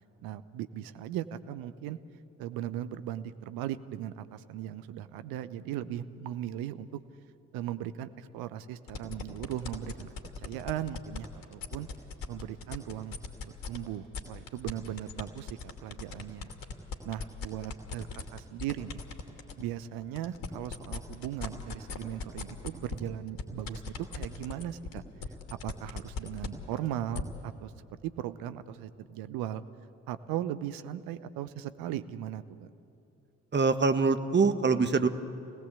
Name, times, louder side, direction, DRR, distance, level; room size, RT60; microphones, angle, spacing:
voice 1, 0.2-2.0 2.4-7.0 7.5-10.1 10.4-11.9 12.3-16.5 17.0-19.0 19.6-23.8 24.1-25.0 25.6-27.7 28.0-29.6 30.1-32.7, right 11 dB, 65° right, 13 dB, 1.0 m, -38 dB
sound 1, 8.9-13.8 14.1-19.6 20.0-27.2, left 4 dB, 60° left, 2.6 m, -38 dB
voice 2, 33.5-35.1, right 4 dB, 30° right, 9 dB, 1.5 m, -24 dB
27.5 x 18.5 x 8.2 m, 2.7 s
figure-of-eight pair, 40°, 38 cm